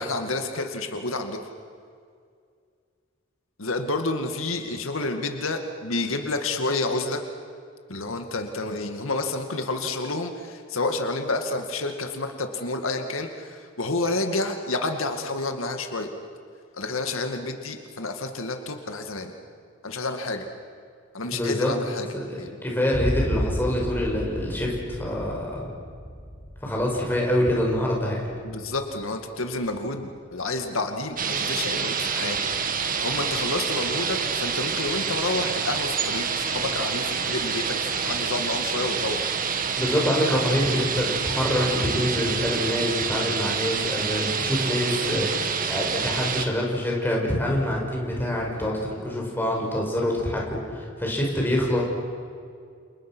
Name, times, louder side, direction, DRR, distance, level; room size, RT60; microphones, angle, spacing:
voice 1, 0.0-1.4 3.6-7.2 7.9-16.1 16.7-19.3 19.8-20.5 21.1-22.1 22.4-22.5 28.4-32.4 33.0-39.3, left 2 dB, 90° left, 5 dB, 2.2 m, -29 dB
voice 2, 21.3-21.7 22.1-25.7 26.6-28.3 39.8-51.8, left 1 dB, 10° left, -2 dB, 6.1 m, -26 dB
sound 1, 22.9-30.3, equal, 30° left, 5.1 m, -33 dB
sound 2, 31.2-46.4, right 6 dB, 45° right, 1.7 m, -27 dB
29.5 x 29.0 x 6.3 m, 2.2 s
head